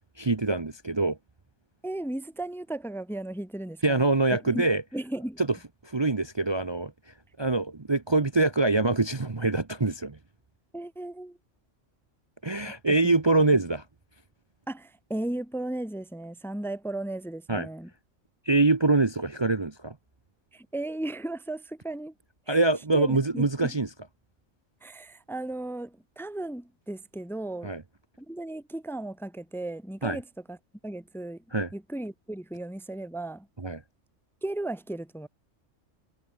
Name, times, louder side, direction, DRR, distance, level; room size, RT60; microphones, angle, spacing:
voice 1, 0.2-1.2 3.8-4.8 5.4-5.5 5.8-6.9 7.4-10.2 12.4-13.8 17.5-17.7 18.4-20.0 22.5-23.9 27.6-27.8 30.0-30.2 31.5-31.7 33.6-33.8, right 3 dB, 25° right, 0.9 m, -24 dB
voice 2, 1.8-4.0 4.5-4.7 4.9-5.4 10.7-11.4 13.0-13.2 13.5-13.6 14.7-17.9 20.5-22.1 22.5-22.6 22.9-23.7 24.8-27.7 28.2-30.6 30.8-31.4 31.7-33.5 34.4-35.3, right 1 dB, ahead, 0.9 m, -35 dB
omnidirectional pair, 1.3 m